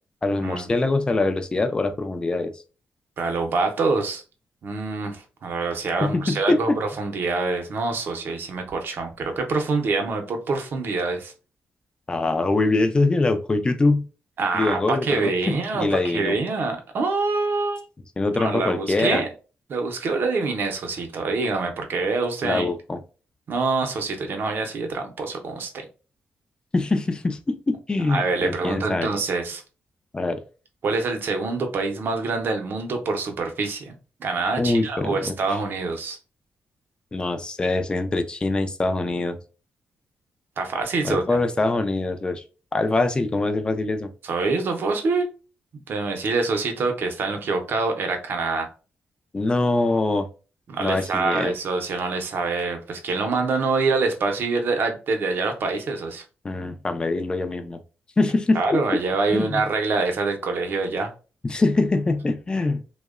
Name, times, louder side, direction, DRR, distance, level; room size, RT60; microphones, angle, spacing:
voice 1, 0.2-2.5 6.0-6.8 12.1-14.1 14.5-16.4 18.2-19.2 22.4-23.0 26.7-29.1 30.1-30.4 34.6-35.3 37.1-39.4 41.0-42.4 42.7-44.1 49.3-50.3 50.8-51.5 56.4-57.8 58.2-58.6 59.3-59.6 61.4-62.8, left 2 dB, 20° left, 0.3 m, -23 dB
voice 2, 3.2-4.2 4.6-11.3 14.4-17.8 18.4-19.3 19.7-22.7 23.5-25.9 28.1-29.6 30.8-33.9 34.2-36.2 40.6-41.4 44.2-45.2 45.9-48.7 50.7-56.2 58.5-61.1, right 3 dB, 60° right, 0.6 m, -25 dB
2.7 x 2.1 x 2.3 m
cardioid pair, 110°, 4 cm